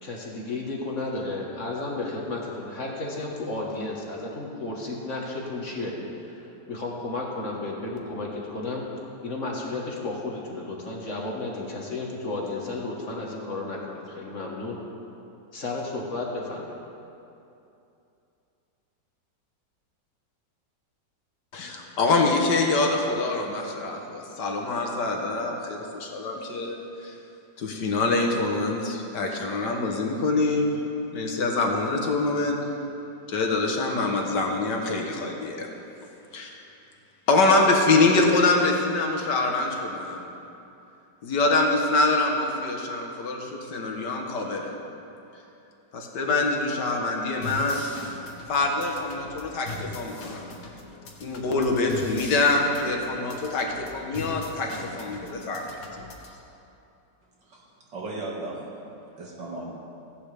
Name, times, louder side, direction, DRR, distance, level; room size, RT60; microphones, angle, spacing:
voice 1, 0.0-5.9 6.2-8.8 9.2-14.8 15.5-16.7, left 2 dB, 45° left, -2 dB, 1.6 m, -33 dB
voice 2, 21.5-27.1 27.6-30.7 31.1-32.6 33.3-35.7 36.3-36.5 37.3-40.2 41.2-44.7 45.9-47.8 48.5-50.4 51.2-55.8, left 3 dB, 70° left, 1 dB, 1.7 m, -25 dB
sound 1, 47.4-56.4, left 3 dB, 85° left, 2.0 m, -40 dB
voice 3, 57.9-58.7 59.2-59.6, right 2 dB, 75° right, -4 dB, 2.5 m, -35 dB
16.0 x 11.0 x 3.4 m, 2.8 s
omnidirectional pair, 2.0 m